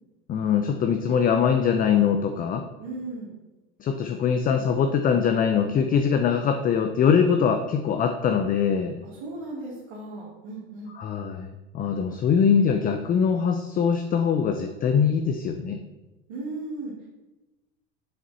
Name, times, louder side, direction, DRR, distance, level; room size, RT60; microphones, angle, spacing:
voice 1, 0.3-2.6 3.8-9.0 11.0-15.8, left 7 dB, 25° left, 6 dB, 0.5 m, -22 dB
voice 2, 2.8-3.3 5.1-5.2 9.0-10.9 16.3-17.1, right 2 dB, 70° right, -5 dB, 1.9 m, -36 dB
7.4 x 4.2 x 4.0 m, 1.1 s
hypercardioid pair, 90°, 33 cm